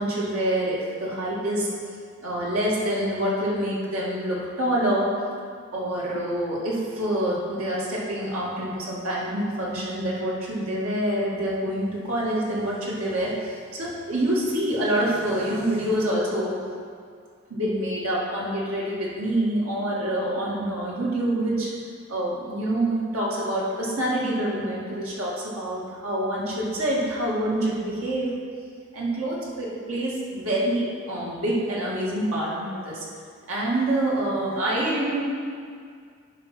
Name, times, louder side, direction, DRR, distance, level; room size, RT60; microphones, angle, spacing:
voice 1, 0.0-1.7 2.2-5.1 5.7-16.6 17.5-21.7 22.1-28.3 28.9-33.1 33.5-35.2, right 1 dB, 85° right, -5 dB, 2.0 m, -26 dB
10.0 x 3.5 x 6.1 m, 2.2 s
head